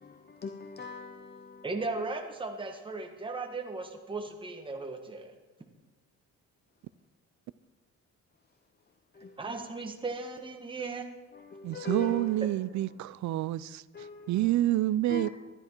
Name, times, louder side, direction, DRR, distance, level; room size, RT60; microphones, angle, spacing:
voice 1, 0.0-1.9 9.1-9.4 10.8-10.9 11.3-13.0 13.9-14.5 15.1-15.3, left 3 dB, 35° left, 0.8 m, -41 dB
voice 2, 1.6-5.3 9.4-11.1, right 3 dB, 15° right, 1.3 m, -36 dB
voice 3, 11.6-13.8 14.3-15.3, right 14 dB, 65° right, 0.5 m, -28 dB
13.0 x 11.0 x 4.5 m
cardioid pair, 90°, 30 cm